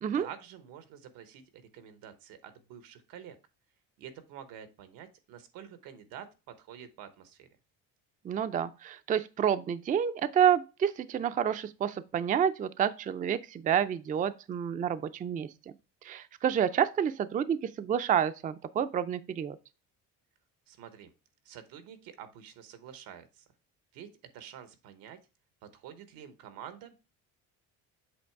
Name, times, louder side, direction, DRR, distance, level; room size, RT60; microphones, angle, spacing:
voice 1, 0.1-3.4 4.0-7.5 20.7-21.1 21.4-23.4 23.9-24.1 24.3-25.2 25.7-27.0, right 9 dB, 90° right, 1.1 m, -48 dB
voice 2, 8.2-15.5 16.0-19.6, right 9 dB, 25° right, 0.4 m, -29 dB
7.8 x 3.2 x 4.5 m
cardioid pair, 120°, 34 cm